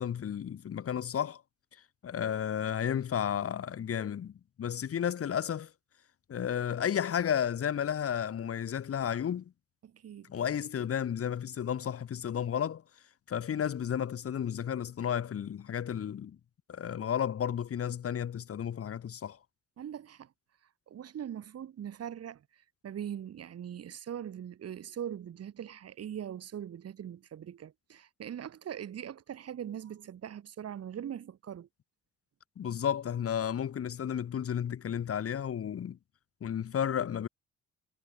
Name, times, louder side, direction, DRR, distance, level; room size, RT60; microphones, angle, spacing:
voice 1, 0.0-1.4 2.0-5.7 6.3-9.4 10.3-12.8 13.3-16.4 16.7-19.4 32.6-36.0 36.4-37.3, left 9 dB, 45° left, 2.2 m, -32 dB
voice 2, 9.8-10.3 19.8-20.3 20.9-22.4 22.8-31.7, right 9 dB, 50° right, 2.4 m, -41 dB
cardioid pair, 110°, 31 cm